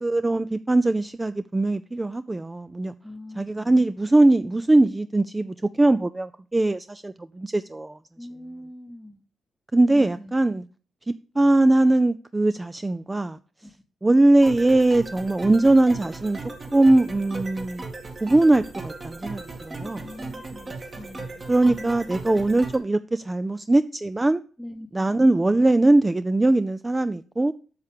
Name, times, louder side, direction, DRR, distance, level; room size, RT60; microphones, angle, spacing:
voice 1, 0.0-2.9 3.4-8.0 9.7-10.6 11.1-13.4 14.0-16.4 16.7-17.8 18.2-20.1 21.5-24.4 24.9-27.5, right 2 dB, 20° right, 0.4 m, -21 dB
voice 2, 3.0-3.8 8.2-9.2 9.9-10.3 13.6-13.7 19.8-22.1 24.6-25.2, left 1 dB, ahead, 1.0 m, -42 dB
sound 1, 14.4-22.8, right 3 dB, 40° right, 2.0 m, -37 dB
8.0 x 6.5 x 3.4 m
hypercardioid pair, 40°, 0 cm